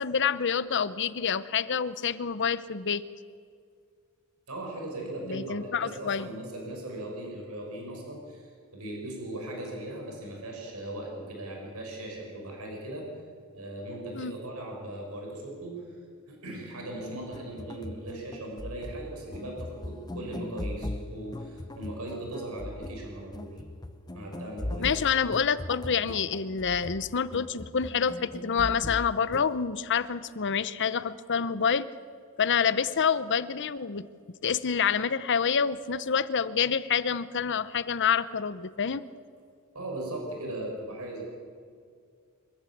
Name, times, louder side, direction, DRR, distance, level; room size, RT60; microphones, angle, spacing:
voice 1, 0.0-3.0 5.3-6.3 14.1-14.4 24.8-31.9 32.4-39.1, left 6 dB, 55° left, 16 dB, 0.8 m, -27 dB
voice 2, 4.5-13.1 13.5-15.8 16.3-23.6 24.1-24.9 39.7-41.2, right 1 dB, 80° right, 0 dB, 6.1 m, -38 dB
sound 1, 17.2-29.6, left 1 dB, 20° left, 0.7 m, -40 dB
24.5 x 14.5 x 8.6 m, 2.2 s
head